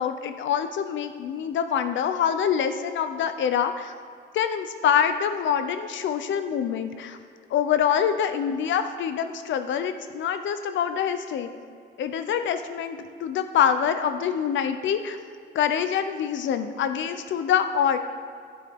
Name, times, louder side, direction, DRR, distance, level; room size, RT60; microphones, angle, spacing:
voice 1, 0.0-3.9 4.3-7.2 7.5-11.5 12.0-15.2 15.5-18.0, left 8 dB, 75° left, 9 dB, 0.6 m, -25 dB
12.0 x 9.3 x 3.6 m, 2.3 s
wide cardioid pair, 170°, 19 cm